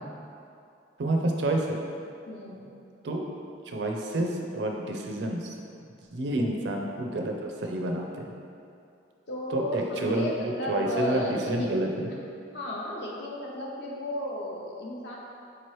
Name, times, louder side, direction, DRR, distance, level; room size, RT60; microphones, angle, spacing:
voice 1, 1.0-1.8 3.0-3.2 3.7-5.6 6.1-8.3 9.5-10.3 10.7-12.1, right 1 dB, 65° right, 1 dB, 0.4 m, -29 dB
voice 2, 2.3-2.8 6.3-6.5 9.3-11.5 12.5-15.2, left 1 dB, 60° left, -3 dB, 0.6 m, -33 dB
4.7 x 3.0 x 3.1 m, 2.5 s
head